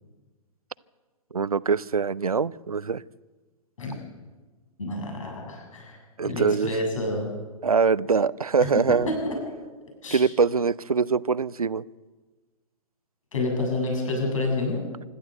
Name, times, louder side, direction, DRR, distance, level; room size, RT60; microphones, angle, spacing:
voice 1, 1.3-3.0 6.2-6.8 7.6-9.1 10.1-11.8, right 5 dB, 80° right, 20 dB, 0.6 m, -23 dB
voice 2, 4.8-6.0 6.2-7.3 8.6-9.3 10.0-10.2 13.3-14.8, left 2 dB, 60° left, 1 dB, 7.3 m, -28 dB
25.5 x 13.5 x 7.9 m, 1.3 s
figure-of-eight pair, 115°, 18 cm